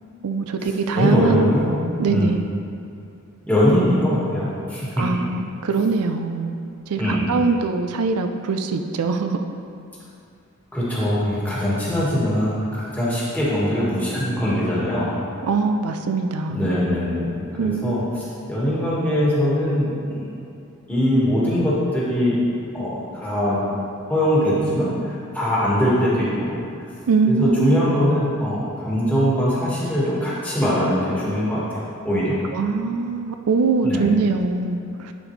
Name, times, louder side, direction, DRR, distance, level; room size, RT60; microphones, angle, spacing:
voice 1, 0.2-1.6 2.0-2.4 5.0-6.6 6.9-9.4 15.4-16.7 17.6-18.0 27.1-27.9 32.5-35.1, right 4 dB, 85° right, 6 dB, 0.5 m, -22 dB
voice 2, 0.9-1.8 2.1-2.3 3.5-5.0 7.0-7.3 10.7-15.1 16.5-18.0 18.5-20.3 20.9-22.4 22.7-23.6 24.1-26.5 27.3-32.4 33.8-34.0, equal, 5° left, -8 dB, 1.7 m, -22 dB
11.0 x 5.1 x 3.2 m, 2.5 s
head